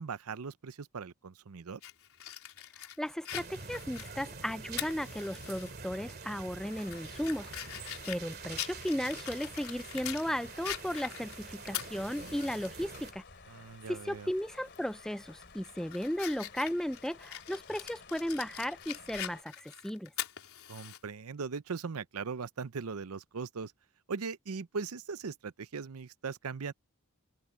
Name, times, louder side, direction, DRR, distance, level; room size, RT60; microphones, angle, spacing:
voice 1, 0.0-1.8 13.5-14.3 20.7-23.7 24.1-26.7, right 5 dB, 80° right, 0.6 m, -39 dB
Fire, 1.8-5.7 6.1-6.2 6.7-10.3 10.6-12.7 13.1-13.2 14.7-14.9 15.4-21.0, left 11 dB, 75° left, 3.9 m, -43 dB
voice 2, 3.0-13.2 13.9-20.1, equal, ahead, 0.3 m, -35 dB
sound 1, 3.3-13.1, right 4 dB, 45° right, 2.5 m, -46 dB
sound 2, 6.6-19.4, left 4 dB, 50° left, 2.9 m, -54 dB
open air
head